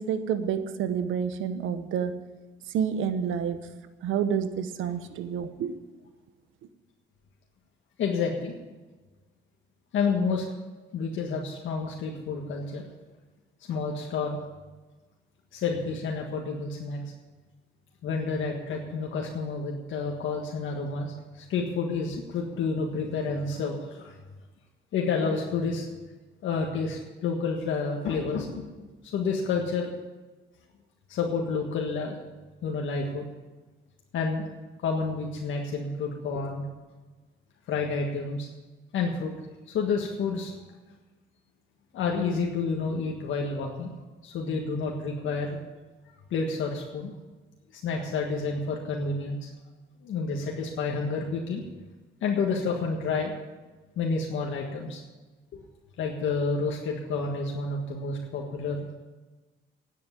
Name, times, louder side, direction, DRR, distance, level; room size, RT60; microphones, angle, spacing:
voice 1, 0.0-2.2 2.7-3.6 4.0-5.7, right 8 dB, 85° right, 10 dB, 0.9 m, -29 dB
voice 2, 8.0-8.5 9.9-10.4 10.9-12.8 13.7-14.4 15.5-17.0 18.0-24.1 24.9-25.9 26.4-28.9 29.1-29.9 31.1-32.2 32.6-33.3 34.1-34.5 34.8-36.6 37.7-38.5 38.9-40.5 41.9-43.9 44.2-45.6 46.3-47.2 47.7-49.5 50.0-51.6 52.2-53.3 53.9-55.0 56.0-58.8, left 4 dB, 75° left, 0 dB, 1.7 m, -29 dB
9.9 x 8.5 x 9.8 m, 1.2 s
cardioid pair, 90°, 20 cm